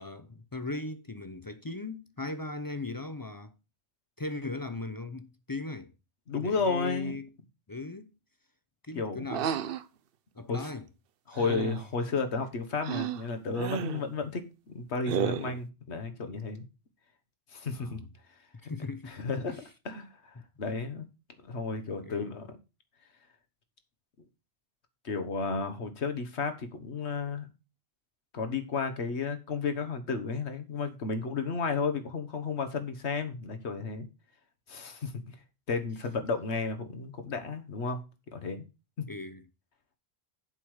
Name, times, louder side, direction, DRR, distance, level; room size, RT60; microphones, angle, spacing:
voice 1, 0.0-3.5 4.2-5.9 6.3-7.3 7.7-8.1 8.8-9.7 10.3-10.9 11.3-11.4 17.7-18.1 18.6-19.2 19.5-19.6 20.4-20.5 22.0-22.3 39.1-39.5, left 2 dB, 25° left, 0.5 m, -38 dB
voice 2, 6.3-7.2 8.9-9.3 10.5-10.7 11.3-16.6 17.5-18.0 19.1-19.6 19.8-21.0 21.4-22.6 25.0-27.5 28.3-34.1 34.7-35.3 35.7-38.0 38.3-38.7, left 4 dB, 85° left, 1.5 m, -33 dB
sound 1, 9.3-9.8 11.4-11.9 12.8-13.2 13.6-14.0 15.1-15.6, right 9 dB, 65° right, 0.8 m, -32 dB
7.5 x 4.9 x 6.3 m
omnidirectional pair, 1.1 m